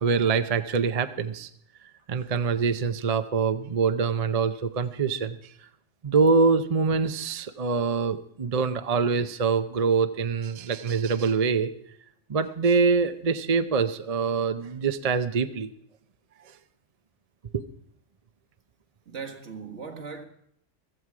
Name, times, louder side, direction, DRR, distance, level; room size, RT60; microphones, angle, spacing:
voice 1, 0.0-1.5 2.1-5.5 6.0-11.7 12.3-15.7 17.5-17.6, right 5 dB, 40° right, 0.6 m, -24 dB
voice 2, 19.1-20.3, right 5 dB, 65° right, 2.0 m, -38 dB
15.5 x 14.0 x 4.8 m
omnidirectional pair, 1.3 m